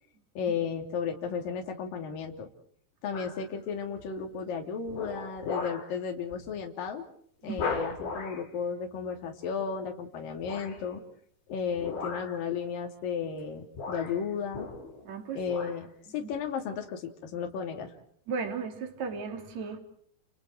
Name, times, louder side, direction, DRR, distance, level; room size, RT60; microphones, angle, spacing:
voice 1, 0.4-2.5 3.0-7.0 7.4-11.0 11.5-14.7 15.3-17.9, left 6 dB, 55° left, 2 dB, 4.4 m, -34 dB
sound 1, 3.1-3.5 4.0-4.4 4.9-5.9 6.3-6.5 6.9-7.0 7.5-8.5 10.4-10.9 11.8-12.4 13.3-13.5 13.8-15.1 15.4-15.8 16.3-16.4, left 4 dB, 80° left, 8.0 m, -37 dB
voice 2, 15.0-15.4 16.2-16.3 18.3-19.8, right 5 dB, 40° right, 4 dB, 4.3 m, -35 dB
30.0 x 30.0 x 4.6 m, 0.63 s
omnidirectional pair, 5.0 m